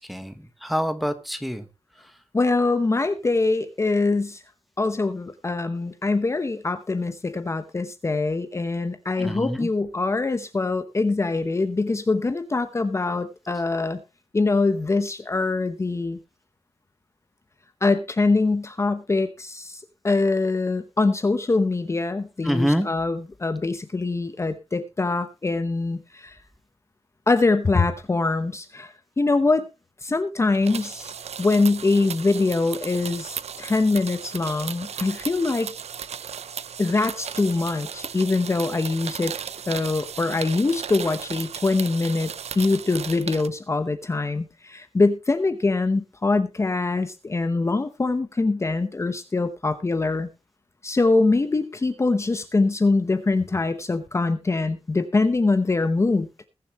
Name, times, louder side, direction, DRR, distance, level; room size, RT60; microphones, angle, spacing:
voice 1, 0.0-1.7 9.2-9.7 22.4-22.9, equal, ahead, 9 dB, 1.2 m, -26 dB
voice 2, 2.3-4.4 4.8-14.0 14.3-16.2 17.8-26.3 27.3-29.7 30.0-31.1 31.4-35.7 36.8-39.3 39.7-42.3 42.6-50.3 50.8-56.3, left 3 dB, 25° left, 9 dB, 0.9 m, -23 dB
sound 1, 30.5-43.5, right 7 dB, 90° right, 0.7 m, -36 dB
21.0 x 7.1 x 3.0 m, 0.27 s
wide cardioid pair, 175°, 11 cm